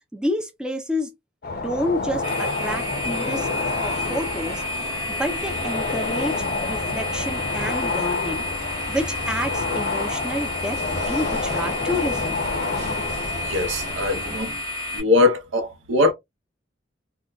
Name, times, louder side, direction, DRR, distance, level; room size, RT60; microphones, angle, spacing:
voice 1, 0.1-1.1 1.6-3.5 3.8-8.5 8.9-10.8 11.1-12.4, equal, 5° right, 0.4 m, -29 dB
sound 1, 1.4-14.4, left 3 dB, 50° left, 0.5 m, -29 dB
sound 2, 2.2-15.0, left 2 dB, 20° right, 1.5 m, -31 dB
sound 3, 2.6-14.6, right 2 dB, 35° right, 0.8 m, -39 dB
voice 2, 13.4-14.5 14.9-16.1, left 3 dB, 80° right, 0.8 m, -21 dB
3.7 x 2.2 x 2.2 m
head